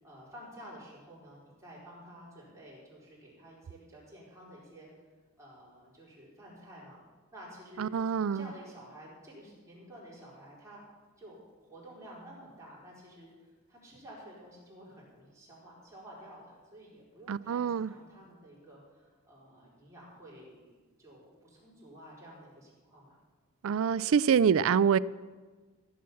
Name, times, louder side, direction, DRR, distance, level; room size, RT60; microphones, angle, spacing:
voice 1, 0.0-4.9 5.4-7.0 7.3-7.9 8.3-10.8 11.2-23.2, equal, 15° right, -6 dB, 4.9 m, -51 dB
voice 2, 7.8-8.4 17.3-17.9 23.6-25.0, right 7 dB, 70° right, 19 dB, 0.4 m, -26 dB
15.5 x 7.5 x 7.1 m, 1.4 s
head